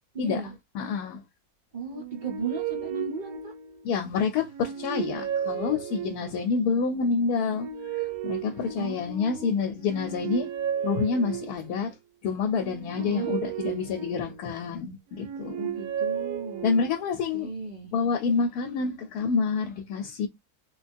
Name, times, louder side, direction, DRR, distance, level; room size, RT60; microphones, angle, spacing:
voice 1, 0.1-0.5 1.7-3.5 8.8-9.5 13.0-13.3 15.6-16.8 17.3-17.9, right 3 dB, 55° right, 0.5 m, -35 dB
voice 2, 0.7-1.2 3.8-10.5 10.8-12.0 12.2-15.6 16.6-17.5 17.9-20.3, left 5 dB, 90° left, 1.1 m, -28 dB
sound 1, 1.8-4.0 4.4-6.5 7.2-9.3 9.8-11.8 12.5-14.6 15.1-17.1, right 9 dB, 80° right, 1.1 m, -34 dB
3.3 x 2.3 x 2.5 m
omnidirectional pair, 1.6 m